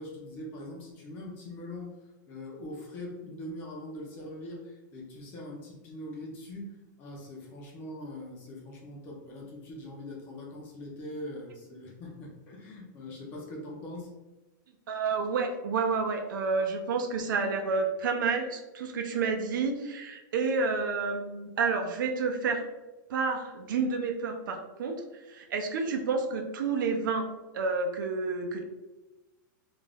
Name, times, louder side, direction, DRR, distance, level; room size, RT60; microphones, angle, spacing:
voice 1, 0.0-2.0 2.3-14.1, left 1 dB, 20° left, -1 dB, 0.4 m, -42 dB
voice 2, 14.9-22.6 23.1-25.0 25.3-27.3 27.5-28.6, right 4 dB, 85° right, 4 dB, 0.5 m, -29 dB
2.4 x 2.1 x 3.3 m, 1.1 s
supercardioid pair, 180°, 10 cm